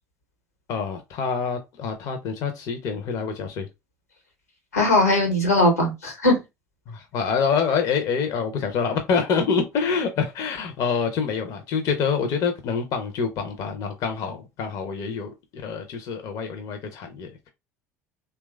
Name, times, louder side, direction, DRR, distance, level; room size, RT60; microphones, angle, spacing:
voice 1, 0.7-3.7 6.9-17.5, left 6 dB, 50° left, 0.5 m, -26 dB
voice 2, 4.7-6.4, left 1 dB, 85° left, 1.0 m, -19 dB
2.9 x 2.2 x 2.2 m
figure-of-eight pair, 65°, 8 cm